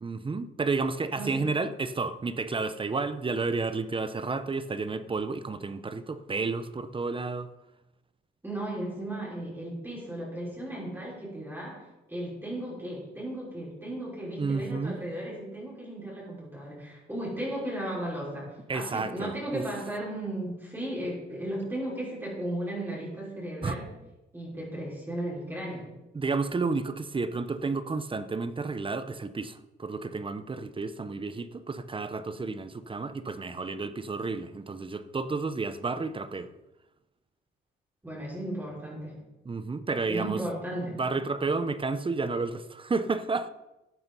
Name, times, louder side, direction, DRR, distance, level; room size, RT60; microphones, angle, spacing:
voice 1, 0.0-7.5 14.4-15.0 18.7-19.6 23.6-23.8 26.1-36.5 39.4-40.4 41.0-43.5, right 4 dB, 25° right, 0.9 m, -31 dB
voice 2, 8.4-18.5 18.7-23.9 24.3-25.9 38.0-39.2 40.0-41.0, right 1 dB, 10° right, 5.7 m, -35 dB
14.0 x 8.6 x 5.6 m
cardioid pair, 90°, 20 cm